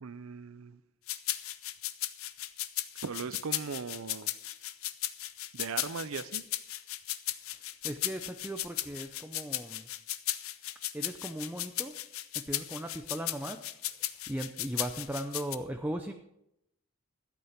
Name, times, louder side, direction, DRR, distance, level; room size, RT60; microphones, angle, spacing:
voice 1, 0.0-0.8 3.0-4.3 5.5-6.4, right 5 dB, 85° right, 0.6 m, -38 dB
sound 1, 1.1-15.6, left 14 dB, 85° left, 0.7 m, -36 dB
voice 2, 7.6-9.9 10.9-12.0 12.3-13.7 14.3-16.1, right 1 dB, 10° right, 0.6 m, -38 dB
12.5 x 8.5 x 5.8 m
head